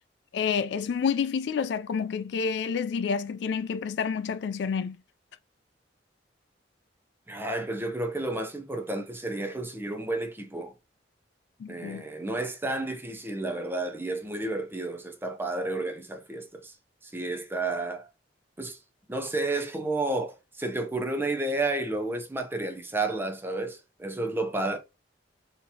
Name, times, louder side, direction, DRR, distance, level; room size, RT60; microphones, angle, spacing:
voice 1, 0.3-5.0 11.6-12.0, left 6 dB, 70° left, 0.3 m, -29 dB
voice 2, 7.3-10.7 11.7-16.7 17.0-18.1 18.6-18.8 19.1-24.8, right 2 dB, 10° right, 0.5 m, -31 dB
4.3 x 2.8 x 2.7 m
head